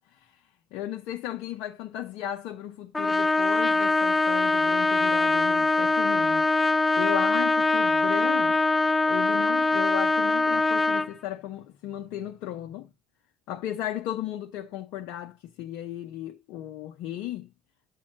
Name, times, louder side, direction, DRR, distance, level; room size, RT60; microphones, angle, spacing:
voice 1, 0.7-6.5 7.0-8.6 9.1-12.9 13.5-17.5, left 12 dB, 55° left, 0.8 m, -35 dB
Trumpet, 2.9-11.1, left 3 dB, 15° left, 0.5 m, -23 dB
8.5 x 5.5 x 4.1 m
figure-of-eight pair, 60°, 0 cm